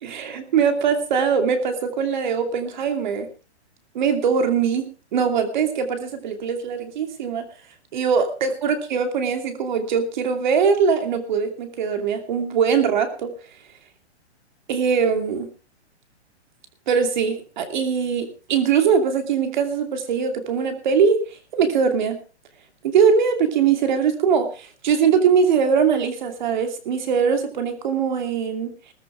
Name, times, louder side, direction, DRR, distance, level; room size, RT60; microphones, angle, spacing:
voice 1, 0.0-3.3 3.9-7.5 7.9-13.3 14.7-15.5 16.9-22.2 22.8-28.7, right 6 dB, 40° right, 7 dB, 2.7 m, -21 dB
19.0 x 14.5 x 3.4 m, 0.33 s
hypercardioid pair, 170°, 34 cm